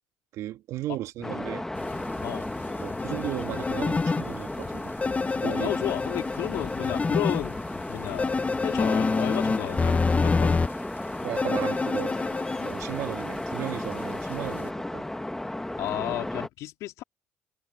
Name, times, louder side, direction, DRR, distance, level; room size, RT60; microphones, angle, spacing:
voice 1, 0.3-1.7 2.8-5.0 5.4-5.7 6.4-6.5 11.2-12.2 12.6-15.0, right 14 dB, 70° right, 2.7 m, -35 dB
sound 1, 1.2-16.5, left 1 dB, 10° left, 1.8 m, -34 dB
sound 2, 1.7-14.7, left 6 dB, 40° left, 2.9 m, -44 dB
sound 3, 3.0-4.2 5.0-7.4 8.2-10.7 11.4-12.7, left 4 dB, 25° left, 0.9 m, -27 dB
voice 2, 5.4-7.6 7.9-8.3 8.6-10.6 15.8-17.0, left 16 dB, 75° left, 3.2 m, -33 dB
supercardioid pair, 65°, 5 cm